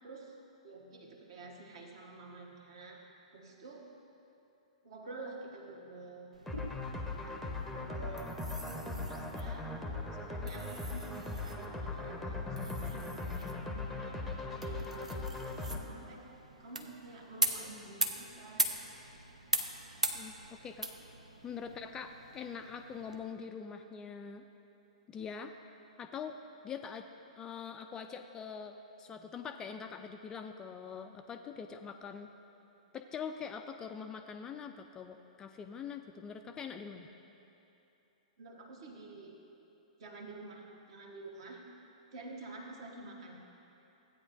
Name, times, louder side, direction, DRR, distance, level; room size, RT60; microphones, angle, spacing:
voice 1, 0.0-0.4 0.6-3.0 3.3-3.9 4.8-6.3 7.1-9.7 10.1-14.1 14.5-16.2 16.6-18.7 21.5-21.7 38.4-39.3 40.0-41.6 42.1-43.4, right 3 dB, 50° right, 0 dB, 1.4 m, -49 dB
sound 1, 6.3-23.2, right 2 dB, 80° right, 0.6 m, -41 dB
sound 2, 6.5-15.8, left 2 dB, ahead, 0.7 m, -39 dB
voice 2, 20.1-21.1 21.4-24.4 25.1-25.5 26.0-26.4 26.6-27.1 27.4-32.3 32.9-37.1, left 6 dB, 20° left, 6 dB, 0.3 m, -44 dB
15.0 x 9.0 x 2.6 m, 2.9 s
figure-of-eight pair, 110°, 4 cm